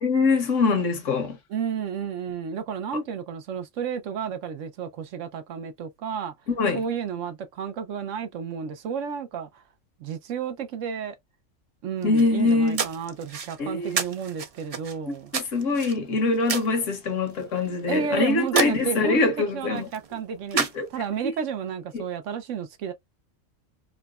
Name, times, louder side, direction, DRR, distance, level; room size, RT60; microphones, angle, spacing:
voice 1, 0.0-1.4 6.6-6.8 12.0-12.8 13.6-14.0 15.1-19.9 20.5-20.9 21.9-22.0, left 3 dB, 70° left, 1.3 m, -24 dB
voice 2, 1.5-6.3 6.7-9.6 10.0-11.2 11.8-15.3 17.9-20.6 20.9-22.9, right 7 dB, 75° right, 1.0 m, -31 dB
sound 1, 12.0-21.3, right 6 dB, 50° right, 0.4 m, -33 dB
4.8 x 2.2 x 2.3 m
omnidirectional pair, 1.3 m